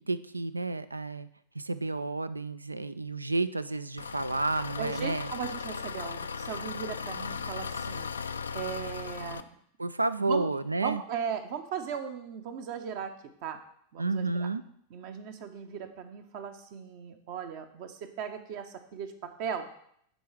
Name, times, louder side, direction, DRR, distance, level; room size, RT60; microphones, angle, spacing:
voice 1, 0.1-1.3 1.5-5.3 9.8-11.0 14.0-14.6, right 3 dB, 80° right, 15 dB, 0.3 m, -31 dB
Engine, 4.0-9.4, left 5 dB, 70° left, 0.3 m, -37 dB
voice 2, 4.8-8.1 8.5-9.4 10.2-13.1 13.4-13.6 13.9-14.5 14.9-19.7, right 7 dB, 45° right, 7 dB, 0.7 m, -37 dB
9.1 x 3.9 x 4.7 m, 0.68 s
figure-of-eight pair, 90°, 0 cm